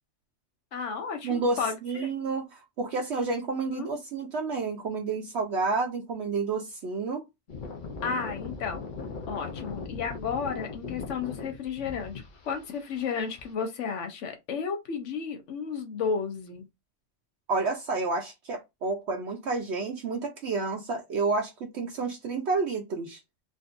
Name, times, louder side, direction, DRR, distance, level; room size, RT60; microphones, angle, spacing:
voice 1, 0.7-2.1 3.7-3.9 8.0-8.9 9.3-16.7, left 6 dB, 70° left, 1.1 m, -33 dB
voice 2, 1.2-7.2 17.5-23.2, right 3 dB, 65° right, 0.9 m, -30 dB
sound 1, 7.5-13.5, left 4 dB, 45° left, 0.8 m, -39 dB
3.7 x 2.6 x 2.5 m
omnidirectional pair, 1.3 m